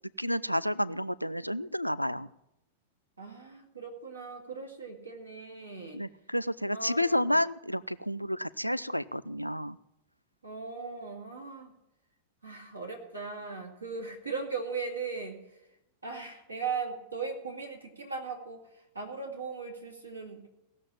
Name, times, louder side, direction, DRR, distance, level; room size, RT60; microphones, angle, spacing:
voice 1, 0.2-2.3 5.9-9.8, left 1 dB, 90° left, 15 dB, 0.4 m, -30 dB
voice 2, 3.2-6.0 6.7-7.3 10.4-11.7 12.4-15.4 16.0-18.6 18.9-20.4, right 4 dB, 80° right, 2 dB, 2.1 m, -38 dB
17.0 x 6.8 x 7.2 m, 0.87 s
figure-of-eight pair, 90°, 0 cm